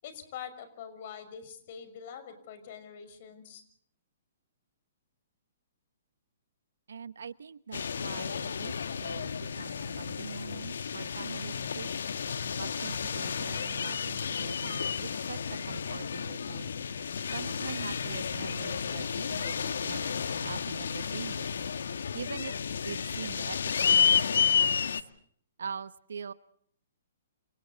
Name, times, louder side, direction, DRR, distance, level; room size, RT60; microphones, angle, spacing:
voice 1, 0.0-3.6, left 8 dB, 50° left, 10 dB, 6.1 m, -44 dB
voice 2, 6.9-11.9 12.5-16.8 17.3-21.5 22.1-22.5 22.8-24.9 25.6-26.3, right 6 dB, 75° right, 15 dB, 1.2 m, -43 dB
sound 1, 7.7-25.0, left 7 dB, 75° left, 1.4 m, -31 dB
29.5 x 28.0 x 4.2 m, 0.63 s
hypercardioid pair, 130°, 0 cm